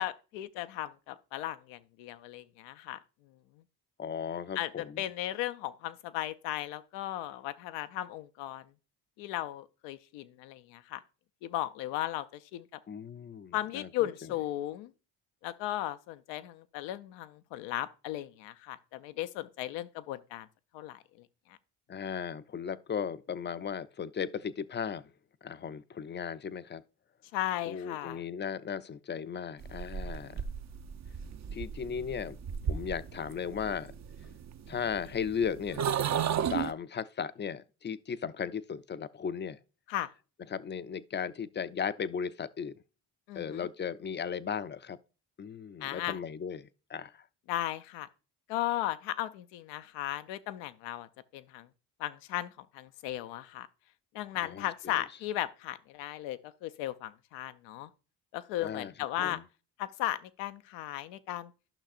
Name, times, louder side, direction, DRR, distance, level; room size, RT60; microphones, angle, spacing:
voice 1, 0.0-3.0 4.5-8.6 9.2-11.0 11.4-12.7 13.5-14.9 15.4-20.5 20.7-21.6 27.3-28.2 30.1-30.4 39.9-40.1 43.3-43.7 45.8-46.2 47.5-48.1 48.5-51.1 51.3-51.7 52.0-53.7 54.1-57.9 58.3-59.4 59.8-61.5, left 14 dB, 90° left, 0.6 m, -36 dB
voice 2, 4.0-5.0 12.9-13.9 21.9-25.1 25.4-26.8 27.7-30.4 31.5-32.4 32.6-33.9 34.7-35.8 36.5-39.6 40.5-42.8 43.3-45.0 45.4-47.2 54.4-55.0 58.6-58.9 59.2-59.4, left 7 dB, 25° left, 0.4 m, -36 dB
sound 1, 29.6-36.7, right 8 dB, 40° right, 0.6 m, -35 dB
12.0 x 5.8 x 2.4 m
supercardioid pair, 55°, 43 cm